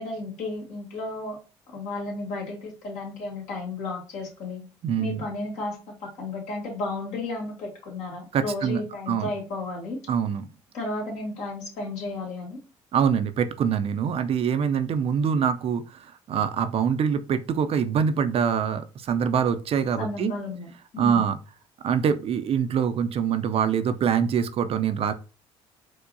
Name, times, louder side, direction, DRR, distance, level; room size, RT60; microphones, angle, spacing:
voice 1, 0.0-1.4 1.7-4.6 5.0-10.0 10.7-12.6 20.0-20.7 20.9-21.3, left 2 dB, 70° left, -2 dB, 1.7 m, -33 dB
voice 2, 4.8-5.2 8.3-8.8 9.1-9.3 10.1-10.5 12.9-20.3 21.0-21.4 21.8-25.1, right 7 dB, 55° right, 11 dB, 0.4 m, -24 dB
4.6 x 2.0 x 2.6 m, 0.34 s
supercardioid pair, 65°, 12 cm